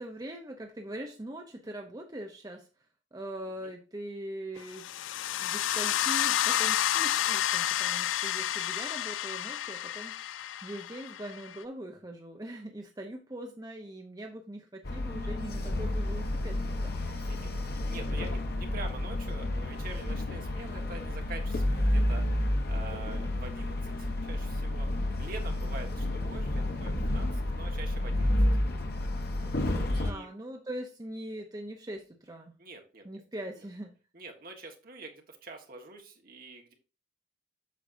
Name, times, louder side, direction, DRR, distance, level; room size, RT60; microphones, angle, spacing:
voice 1, 0.0-2.7 3.1-4.9 5.4-10.2 10.6-17.3 30.0-32.5 33.0-33.9, right 1 dB, 20° right, 3 dB, 0.7 m, -41 dB
sound 1, 4.7-11.6, left 11 dB, 80° left, 0.3 m, -30 dB
sound 2, 14.8-30.1, left 1 dB, 55° left, 1.1 m, -30 dB
voice 2, 17.2-27.3 27.5-28.4 29.3-29.5 29.8-30.3 32.6-33.0 33.6-33.7 34.1-36.7, right 3 dB, 50° right, 3 dB, 1.4 m, -46 dB
8.3 x 6.2 x 2.6 m, 0.33 s
head